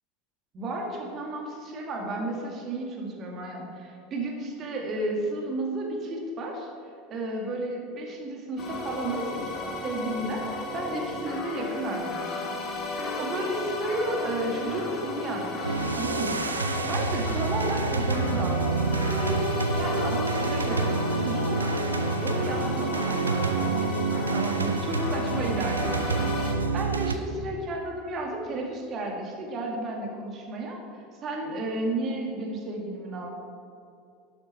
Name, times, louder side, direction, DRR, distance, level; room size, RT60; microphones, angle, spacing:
voice 1, 0.5-6.7 7.1-9.5 9.8-12.5 13.2-16.5 16.9-21.9 22.2-23.9 24.3-30.8 31.2-33.3, right 2 dB, 35° right, 0 dB, 2.1 m, -32 dB
sound 1, 8.6-26.5, left 3 dB, 35° left, 1.8 m, -34 dB
sound 2, 15.6-27.2, right 4 dB, 85° right, 0.5 m, -28 dB
12.0 x 6.6 x 4.4 m, 2.5 s
figure-of-eight pair, 80°, 0 cm